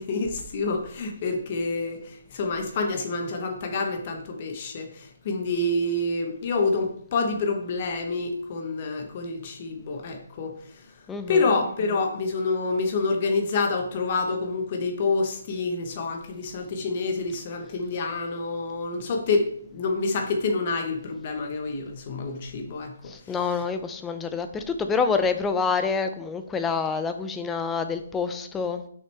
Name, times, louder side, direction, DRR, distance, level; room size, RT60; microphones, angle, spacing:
voice 1, 0.0-11.0 11.3-23.3, left 3 dB, 30° left, 4 dB, 1.0 m, -27 dB
voice 2, 11.1-11.4 23.1-28.8, left 5 dB, 10° left, 8 dB, 0.4 m, -27 dB
6.3 x 5.8 x 3.4 m, 0.63 s
hypercardioid pair, 170°, 0 cm